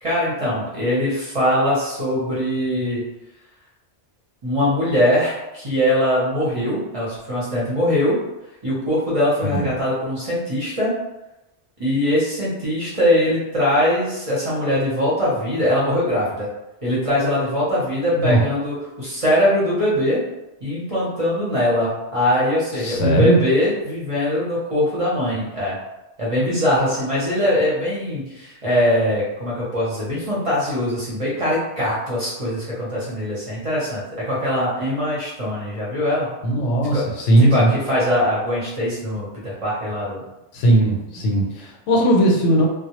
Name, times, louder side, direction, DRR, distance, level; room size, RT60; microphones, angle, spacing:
voice 1, 0.0-3.0 4.4-8.2 8.6-10.9 11.8-16.5 16.8-20.2 20.6-25.8 26.2-36.3 36.9-37.1 37.4-40.2, left 1 dB, 35° right, -8 dB, 0.7 m, -22 dB
voice 2, 22.8-23.4 36.4-37.7 40.5-42.7, right 1 dB, 90° left, 0 dB, 0.9 m, -18 dB
2.2 x 2.0 x 2.9 m, 0.96 s
omnidirectional pair, 1.2 m